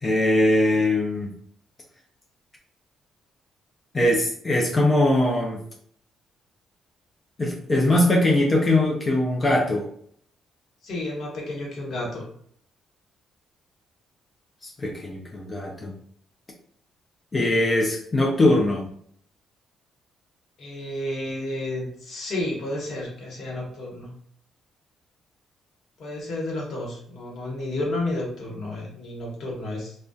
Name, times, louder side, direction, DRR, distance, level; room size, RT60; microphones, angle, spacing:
voice 1, 0.0-1.3 3.9-5.6 7.4-9.9 14.6-15.9 17.3-18.9, left 1 dB, 30° left, -1 dB, 0.4 m, -21 dB
voice 2, 10.8-12.2 20.6-24.1 26.0-30.0, left 1 dB, 65° left, -2 dB, 1.0 m, -31 dB
2.5 x 2.2 x 2.3 m, 0.62 s
cardioid pair, 90°, 0 cm